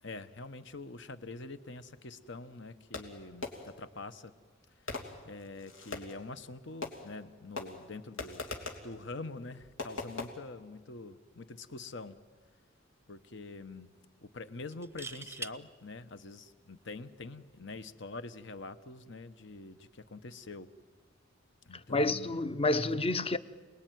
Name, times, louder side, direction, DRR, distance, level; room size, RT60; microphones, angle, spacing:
voice 1, 0.0-4.3 4.8-4.9 5.2-12.2 13.1-13.9 14.2-20.7 21.7-22.4, left 3 dB, 65° left, 1.1 m, -45 dB
Fireworks, 2.9-3.9 4.9-6.3 6.8-7.3 7.6-8.9 9.8-10.3, left 3 dB, 90° left, 3.0 m, -41 dB
sound 1, 11.9-12.1 12.5-12.6 14.7-15.6 17.4-17.6, right 2 dB, 15° right, 0.7 m, -42 dB
voice 2, 21.9-23.4, left 2 dB, 30° left, 0.8 m, -29 dB
28.5 x 20.0 x 9.3 m
head